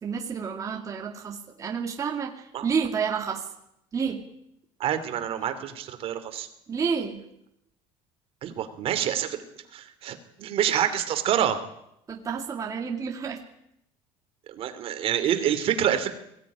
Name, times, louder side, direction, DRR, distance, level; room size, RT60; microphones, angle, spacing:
voice 1, 0.0-3.5 3.9-4.2 6.7-7.2 12.1-13.4, right 6 dB, 25° right, 1 dB, 2.4 m, -30 dB
voice 2, 4.8-6.5 8.4-9.4 9.7-11.6 14.5-16.1, right 10 dB, 50° right, 9 dB, 2.9 m, -27 dB
21.5 x 17.0 x 9.9 m, 0.78 s
cardioid pair, 140°, 12 cm